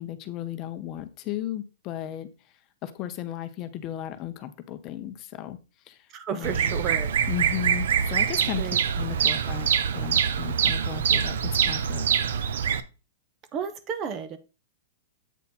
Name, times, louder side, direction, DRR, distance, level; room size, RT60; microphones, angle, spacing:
voice 1, 0.0-2.3 2.8-5.6 5.9-6.1 6.3-6.8 7.3-9.7 9.9-12.1, left 11 dB, 30° left, 0.7 m, -35 dB
voice 2, 6.1-7.1 8.6-8.8 13.5-14.4, right 7 dB, 30° right, 0.8 m, -32 dB
Bird vocalization bird call bird song, 6.4-12.8, right 8 dB, 75° right, 0.6 m, -25 dB
8.2 x 4.1 x 4.1 m
hypercardioid pair, 150°, 0 cm